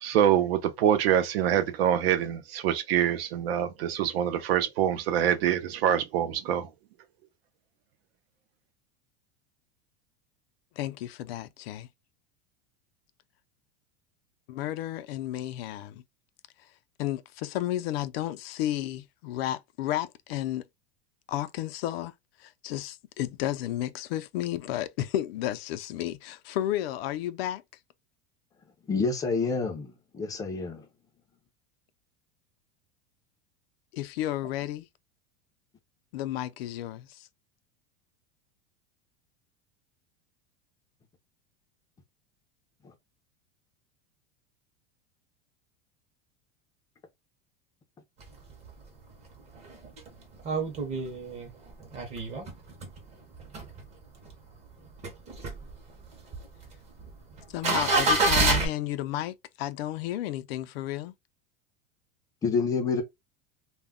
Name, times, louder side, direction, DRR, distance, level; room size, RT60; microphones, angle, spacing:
voice 1, 0.0-6.7, right 10 dB, 85° right, 0.7 m, -25 dB
voice 2, 10.8-11.9 14.5-16.0 17.0-20.6 21.3-22.1 22.4-27.6 33.9-34.9 36.1-37.3 57.5-61.1, left 13 dB, 90° left, 0.5 m, -32 dB
voice 3, 28.9-30.9 62.4-63.0, left 4 dB, 10° left, 0.4 m, -28 dB
sound 1, 48.2-48.8 49.3-49.4 49.5-53.0 53.3-54.3 54.7-58.7, right 2 dB, 20° right, 0.7 m, -28 dB
2.2 x 2.0 x 3.5 m
supercardioid pair, 160°, 29 cm